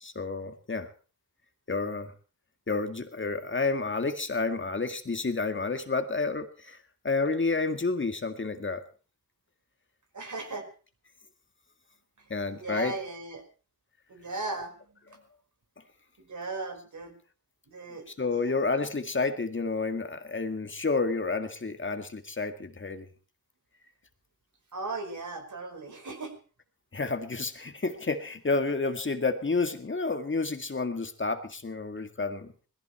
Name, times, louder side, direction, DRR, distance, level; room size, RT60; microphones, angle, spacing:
voice 1, 0.0-0.9 1.7-2.1 2.7-6.8 7.0-8.8 12.3-12.9 18.2-23.1 26.9-32.5, left 3 dB, 35° left, 7 dB, 1.9 m, -30 dB
voice 2, 10.1-10.7 12.2-13.4 14.1-15.2 16.2-17.2 17.7-18.1 18.3-18.6 24.7-26.3, right 3 dB, 65° right, 4 dB, 5.2 m, -37 dB
20.5 x 15.0 x 4.4 m, 0.38 s
wide cardioid pair, 115°, 33 cm